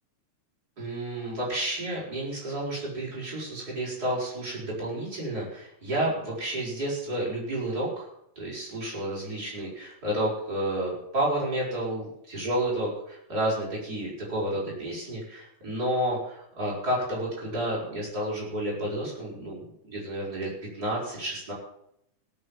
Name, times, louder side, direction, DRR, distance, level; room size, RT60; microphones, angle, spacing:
voice 1, 0.8-8.1 8.4-21.5, right 1 dB, 30° right, -5 dB, 6.0 m, -31 dB
17.0 x 7.0 x 7.4 m, 0.75 s
omnidirectional pair, 3.5 m